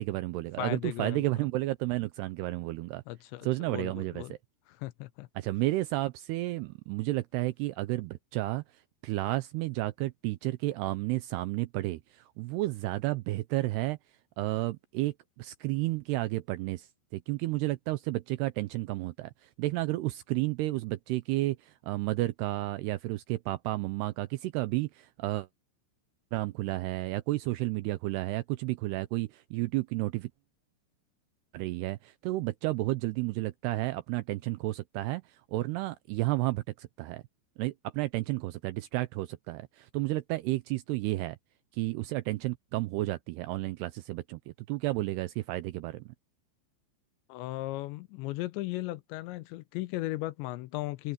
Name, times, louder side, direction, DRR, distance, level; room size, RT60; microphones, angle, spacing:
voice 1, 0.0-3.0 3.4-4.2 5.4-8.6 9.0-14.0 14.4-16.9 17.1-25.5 26.3-30.3 31.5-35.2 35.5-37.2 37.6-41.4 41.7-44.4 44.7-46.1, right 18 dB, 85° right, 2.4 m, -32 dB
voice 2, 0.6-1.3 3.1-4.3 4.8-5.3 47.3-51.1, left 17 dB, 80° left, 3.0 m, -36 dB
open air
omnidirectional pair, 5.3 m